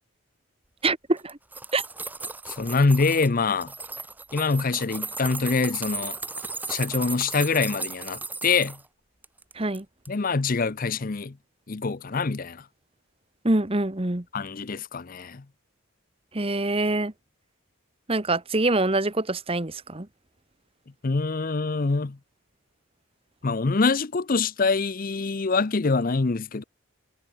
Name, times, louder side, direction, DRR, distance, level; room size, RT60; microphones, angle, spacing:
voice 1, 0.8-1.4 1.7-1.8 9.6-9.8 13.4-14.2 16.3-17.1 18.1-20.1, right 2 dB, 25° right, 1.2 m, -25 dB
sound 1, 1.2-3.3 3.6-8.8 9.2-9.8 10.0-10.1, right 3 dB, 10° right, 0.7 m, -36 dB
voice 2, 2.5-3.7 4.3-6.2 6.7-8.8 10.1-11.4 11.7-12.7 14.3-15.4 21.0-22.2 23.4-26.6, left 4 dB, 40° left, 0.6 m, -25 dB
head